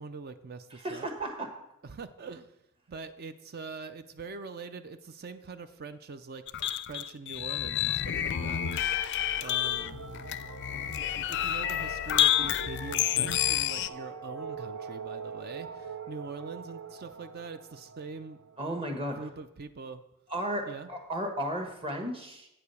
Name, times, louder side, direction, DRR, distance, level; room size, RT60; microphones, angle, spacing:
voice 1, 0.0-1.1 1.8-2.5 2.9-6.4 6.9-8.7 9.4-10.0 11.3-18.4 19.2-20.0 20.7-20.9, right 4 dB, 45° right, 11 dB, 0.5 m, -43 dB
voice 2, 0.7-1.5 18.6-19.2 20.3-22.5, right 1 dB, 25° right, 4 dB, 1.3 m, -34 dB
sound 1, 6.5-13.9, left 11 dB, 55° left, 0.4 m, -29 dB
sound 2, 7.4-19.3, right 5 dB, 70° right, 0.8 m, -44 dB
8.7 x 4.8 x 6.9 m, 0.86 s
head